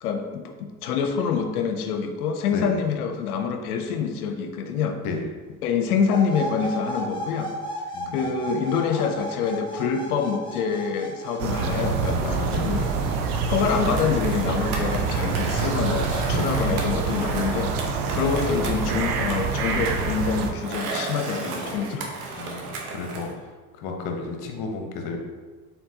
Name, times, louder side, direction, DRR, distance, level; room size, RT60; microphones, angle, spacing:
voice 1, 0.0-5.0 5.6-7.5 8.0-12.9 13.5-17.7 18.1-22.1, left 6 dB, 75° left, 6 dB, 0.7 m, -26 dB
sound 1, 6.1-17.3, right 1 dB, 10° left, 1.0 m, -37 dB
voice 2, 7.9-8.2 12.2-12.7 16.3-16.5 22.4-23.3 23.8-25.2, left 4 dB, 55° left, 2 dB, 1.0 m, -32 dB
sound 2, 11.4-20.5, right 5 dB, 75° right, 0.7 m, -26 dB
Skateboard, 13.3-23.3, right 3 dB, 60° right, 1.1 m, -35 dB
4.4 x 4.0 x 2.8 m, 1.3 s
hypercardioid pair, 80°, 45 cm